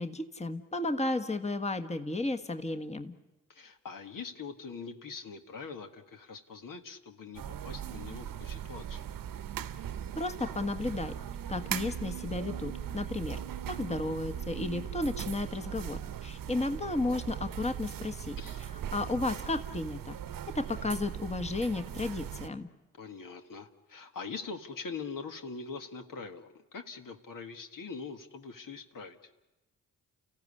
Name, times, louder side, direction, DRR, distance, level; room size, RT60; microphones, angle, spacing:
voice 1, 0.0-3.1 10.1-11.1 11.5-13.4 13.7-18.4 18.9-20.2 20.5-22.7, left 2 dB, 20° left, 8 dB, 1.5 m, -33 dB
voice 2, 3.5-9.0 18.4-18.6 23.0-29.3, left 5 dB, 60° left, 6 dB, 1.8 m, -43 dB
sound 1, 7.3-22.5, right 9 dB, 65° right, 1.0 m, -39 dB
29.5 x 15.0 x 9.8 m, 1.1 s
hypercardioid pair, 45°, 37 cm